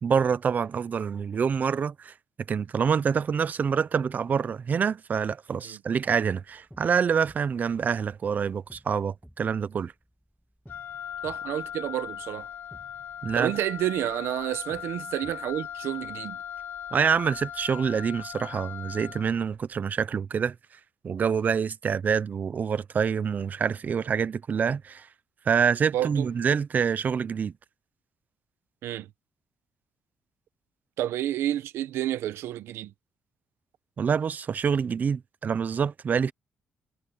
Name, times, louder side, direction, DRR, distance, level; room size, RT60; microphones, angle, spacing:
voice 1, 0.0-2.1 2.5-9.9 13.2-13.5 16.9-20.5 21.0-25.1 25.5-27.5 34.0-36.3, right 6 dB, 40° right, 0.7 m, -26 dB
sound 1, 6.4-16.1, equal, ahead, 2.2 m, -56 dB
Wind instrument woodwind instrument, 10.7-19.4, left 9 dB, 65° left, 3.5 m, -39 dB
voice 2, 11.2-12.5 13.3-16.4 25.9-26.3 28.8-29.1 31.0-32.9, right 12 dB, 90° right, 1.0 m, -30 dB
cardioid pair, 115°, 4 cm